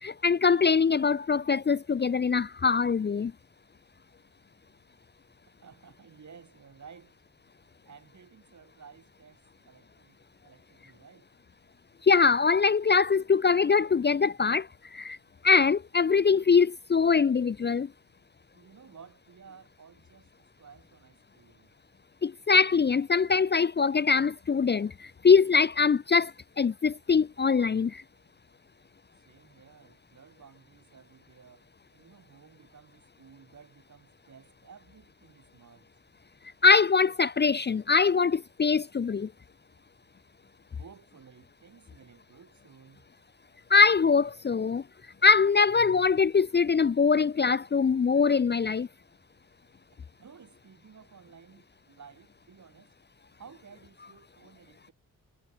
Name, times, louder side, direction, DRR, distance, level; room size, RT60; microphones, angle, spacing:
voice 1, 0.0-3.3 12.0-15.2 15.4-17.9 22.2-28.0 36.6-39.3 43.7-44.8 45.2-48.9, left 5 dB, 30° left, 0.6 m, -23 dB
voice 2, 5.6-7.1 7.8-10.2 10.4-11.3 18.5-21.7 29.2-35.9 40.7-43.1 50.2-52.9 53.4-54.9, right 6 dB, 55° right, 6.4 m, -54 dB
cardioid pair, 95°, 33 cm